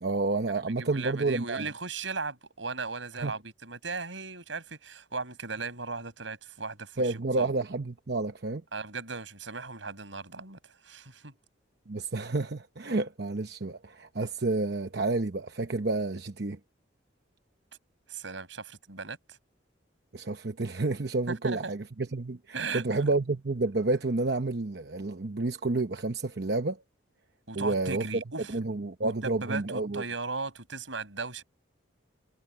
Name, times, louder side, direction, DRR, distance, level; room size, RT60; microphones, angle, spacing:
voice 1, 0.0-1.7 3.2-3.3 7.0-8.6 11.9-16.6 20.1-26.8 27.5-28.1 28.5-30.0, right 3 dB, 60° right, 0.9 m, -30 dB
voice 2, 0.5-7.5 8.7-11.3 18.1-19.4 21.3-21.6 22.5-23.1 27.5-28.6 29.0-31.4, right 4 dB, 85° right, 5.7 m, -37 dB
head